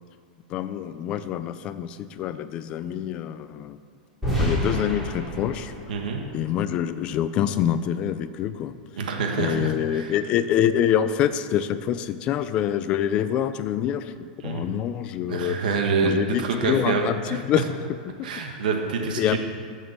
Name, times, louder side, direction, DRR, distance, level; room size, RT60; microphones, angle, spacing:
voice 1, 0.5-3.8 4.4-5.7 6.3-8.7 9.4-15.6 16.0-17.6 18.2-18.3 19.2-19.4, left 10 dB, 20° left, 12 dB, 0.4 m, -26 dB
sound 1, 4.2-7.2, equal, ahead, 3.9 m, -29 dB
voice 2, 5.9-6.2 9.0-10.1 14.4-14.7 15.3-16.1 16.4-17.4 18.2-19.4, right 5 dB, 70° right, 2 dB, 1.7 m, -26 dB
13.0 x 7.4 x 7.2 m, 2.1 s
supercardioid pair, 180°, 5 cm